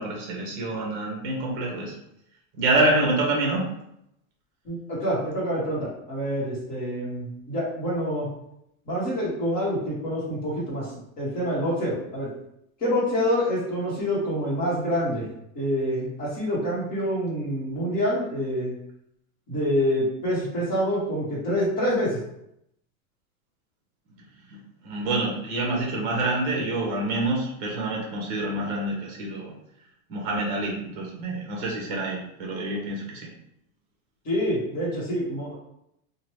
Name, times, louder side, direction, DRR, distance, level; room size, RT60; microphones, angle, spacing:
voice 1, 0.0-2.0 2.5-3.6 24.8-29.5 30.1-33.3, right 2 dB, 35° right, -2 dB, 0.9 m, -27 dB
voice 2, 4.6-8.3 8.8-12.3 12.8-15.3 15.5-18.8 19.5-22.2 34.2-35.6, equal, 20° left, -7 dB, 1.0 m, -26 dB
2.9 x 2.1 x 3.1 m, 0.77 s
supercardioid pair, 170°, 43 cm